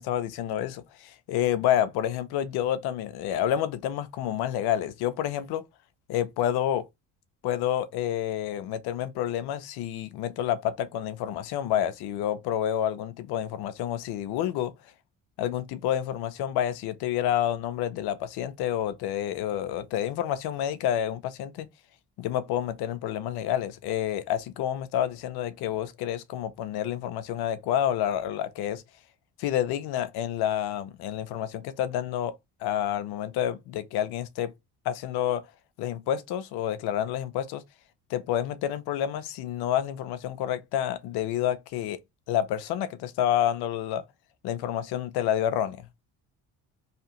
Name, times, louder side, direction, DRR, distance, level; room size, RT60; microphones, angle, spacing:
voice 1, 0.0-5.6 6.1-6.9 7.4-14.7 15.4-21.7 22.2-28.8 29.4-32.3 32.6-34.5 34.9-35.4 35.8-37.6 38.1-42.0 42.3-44.0 44.4-45.9, left 11 dB, 70° left, 0.6 m, -29 dB
2.8 x 2.4 x 2.9 m
supercardioid pair, 65°, 41 cm